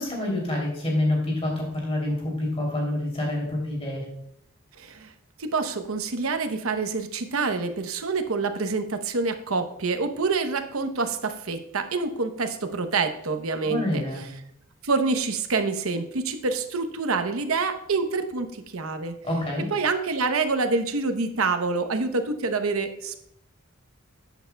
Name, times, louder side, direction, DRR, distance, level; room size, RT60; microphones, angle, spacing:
voice 1, 0.0-4.0 13.6-14.2 19.2-19.7, left 1 dB, 30° left, -1 dB, 2.9 m, -27 dB
voice 2, 4.8-5.1 5.4-14.0 14.8-18.5 18.7-19.1 19.7-23.2, right 4 dB, 80° right, 8 dB, 0.8 m, -26 dB
11.0 x 8.1 x 2.2 m, 0.74 s
head